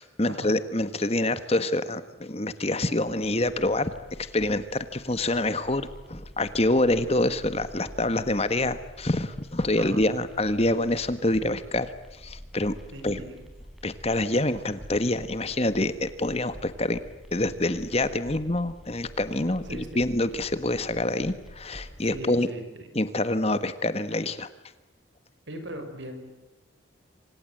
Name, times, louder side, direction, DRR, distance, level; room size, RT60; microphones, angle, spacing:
voice 1, 0.0-3.9 4.2-12.7 13.0-13.2 13.8-17.0 17.3-22.5 22.9-24.5, left 1 dB, 30° left, 12 dB, 1.4 m, -26 dB
sound 1, 3.2-22.2, equal, ahead, 4.7 m, -47 dB
voice 2, 12.9-13.4 19.7-20.0 22.0-22.9 25.5-26.2, equal, 65° right, 7 dB, 5.9 m, -39 dB
27.5 x 26.5 x 7.7 m, 1.1 s
head